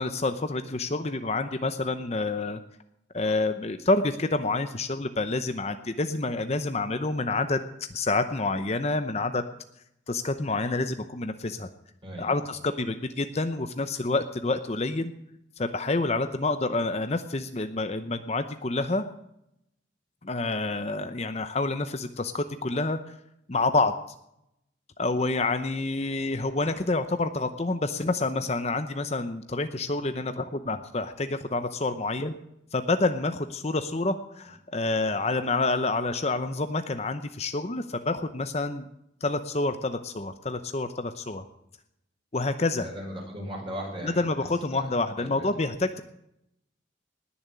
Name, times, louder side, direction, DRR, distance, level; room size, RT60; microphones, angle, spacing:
voice 1, 0.0-2.6 3.1-9.4 10.1-11.7 12.2-15.1 15.6-19.1 20.2-23.2 23.5-23.9 25.0-32.4 32.7-38.8 39.2-41.4 42.3-42.9 44.0-46.0, left 3 dB, 35° left, 9 dB, 0.7 m, -28 dB
voice 2, 42.8-44.2 44.7-44.8 45.1-45.5, equal, 25° right, -1 dB, 5.7 m, -37 dB
19.5 x 7.2 x 8.4 m, 0.81 s
head